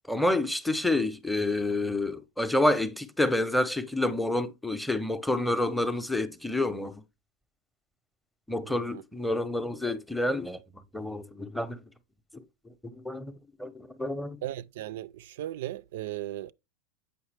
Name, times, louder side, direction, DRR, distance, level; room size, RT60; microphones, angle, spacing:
voice 1, 0.1-7.0 8.5-10.6 10.9-11.8 12.3-12.4 12.8-14.4, left 1 dB, ahead, 0.6 m, -28 dB
voice 2, 8.6-9.0 14.4-16.5, right 14 dB, 75° right, 0.3 m, -37 dB
7.9 x 5.5 x 3.3 m
supercardioid pair, 135°, 0 cm